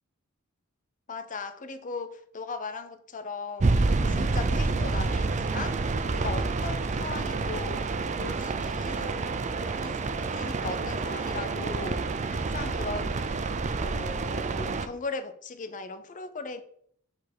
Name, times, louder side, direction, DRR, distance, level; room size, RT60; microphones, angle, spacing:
voice 1, 1.1-7.9 8.2-9.3 9.8-10.0 10.3-13.4 13.8-16.6, left 4 dB, 35° left, 0.6 m, -38 dB
sound 1, 3.6-14.9, right 3 dB, 35° right, 0.5 m, -28 dB
5.2 x 4.4 x 6.0 m
head